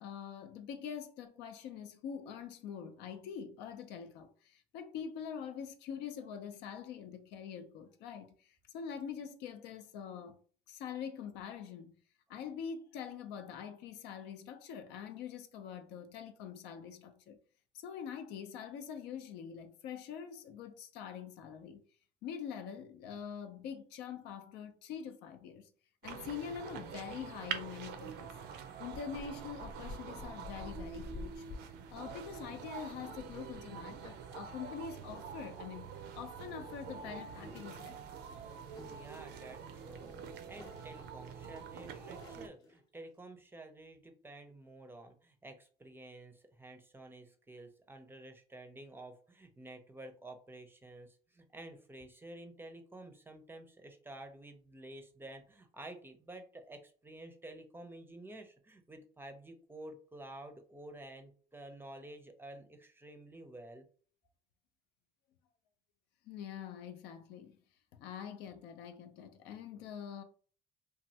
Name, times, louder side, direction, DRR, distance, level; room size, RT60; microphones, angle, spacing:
voice 1, 0.0-10.3 10.7-12.0 12.3-17.4 17.7-21.8 22.2-25.7 26.0-28.3 28.8-31.5 31.9-38.0 66.3-67.6 67.9-70.2, left 7 dB, 90° left, 0.5 m, -44 dB
sound 1, 26.0-42.5, right 7 dB, 75° right, 0.5 m, -46 dB
sound 2, 28.9-34.1, left 2 dB, 45° left, 0.5 m, -48 dB
sound 3, 34.0-34.5 35.8-36.0 36.6-43.0, left 1 dB, 25° left, 0.9 m, -57 dB
voice 2, 38.9-63.9, right 1 dB, 15° right, 0.5 m, -51 dB
3.1 x 2.3 x 2.7 m
cardioid pair, 110°, 17 cm